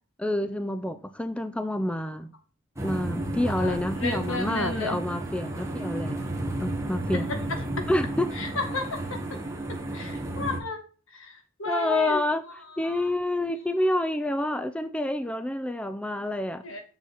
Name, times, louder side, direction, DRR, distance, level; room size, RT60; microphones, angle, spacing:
voice 1, 0.2-2.3 2.8-6.3 6.6-7.3 7.9-8.3 11.7-16.6, left 1 dB, 5° left, 10 dB, 0.4 m, -28 dB
sound 1, 2.8-10.6, right 1 dB, 15° right, 1.4 m, -32 dB
voice 2, 3.4-5.0 7.1-7.4 7.7-7.8 8.4-9.4 9.7-10.8 11.2-12.2 12.8-13.1 16.6-16.8, left 3 dB, 65° left, 5 dB, 1.7 m, -33 dB
7.5 x 6.7 x 4.0 m, 0.39 s
head